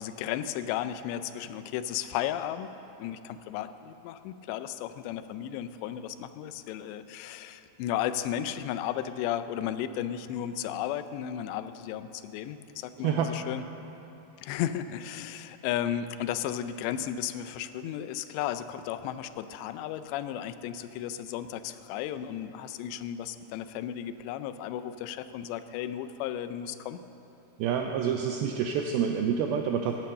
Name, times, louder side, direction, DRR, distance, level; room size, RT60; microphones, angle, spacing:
voice 1, 0.0-2.7 3.0-13.6 14.4-27.0, left 10 dB, 85° left, 11 dB, 2.8 m, -34 dB
voice 2, 27.6-30.0, right 7 dB, 90° right, 3 dB, 2.1 m, -27 dB
15.5 x 8.4 x 6.6 m, 3.0 s
omnidirectional pair, 5.0 m